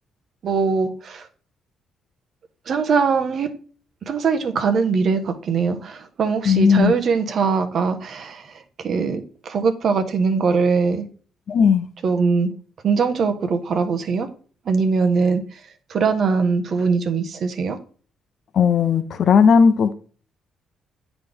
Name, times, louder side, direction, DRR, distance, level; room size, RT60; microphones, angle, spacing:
voice 1, 0.4-1.3 2.7-3.5 4.1-8.4 8.8-11.1 12.0-12.5 12.8-14.3 14.7-15.4 15.9-17.8, right 5 dB, 60° right, 1.0 m, -21 dB
voice 2, 6.5-6.9 11.5-11.9 18.5-19.9, left 6 dB, 60° left, 0.7 m, -16 dB
9.2 x 4.1 x 3.5 m
cardioid pair, 90°, 0 cm